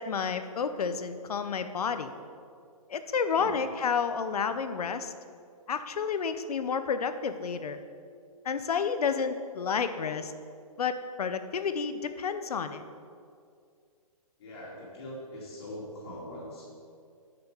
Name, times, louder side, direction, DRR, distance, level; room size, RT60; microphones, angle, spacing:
voice 1, 0.0-2.1 2.9-5.1 5.7-7.8 8.4-10.3 10.8-12.8, left 6 dB, 80° left, 10 dB, 0.8 m, -30 dB
voice 2, 14.4-16.7, left 1 dB, 45° left, -6 dB, 2.4 m, -42 dB
7.8 x 5.7 x 6.7 m, 2.3 s
hypercardioid pair, 165°, 19 cm